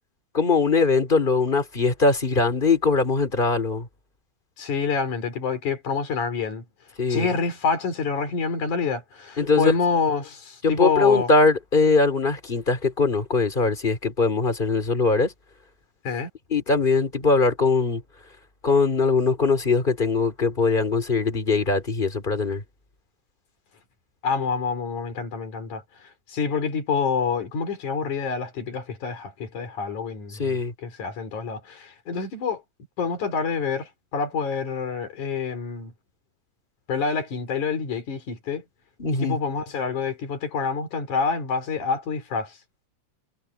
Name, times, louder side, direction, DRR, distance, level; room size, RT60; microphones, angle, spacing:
voice 1, 0.3-3.9 7.0-7.3 9.4-9.7 10.6-15.3 16.5-18.0 18.6-22.6 30.4-30.7 39.0-39.4, left 4 dB, 15° left, 3.0 m, -21 dB
voice 2, 4.6-6.6 7.1-11.3 16.1-16.3 24.2-32.6 33.0-35.9 36.9-38.6 39.2-42.6, left 5 dB, 75° left, 5.6 m, -27 dB
omnidirectional pair, 3.5 m